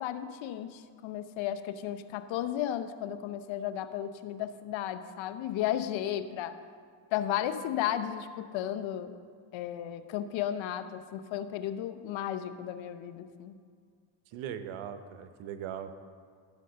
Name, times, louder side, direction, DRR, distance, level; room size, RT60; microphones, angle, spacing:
voice 1, 0.0-6.6 7.1-9.2 9.5-13.5, left 11 dB, 75° left, 10 dB, 0.8 m, -34 dB
voice 2, 14.3-15.9, right 9 dB, 80° right, 9 dB, 0.9 m, -39 dB
15.0 x 5.3 x 6.6 m, 2.1 s
supercardioid pair, 65°, 47 cm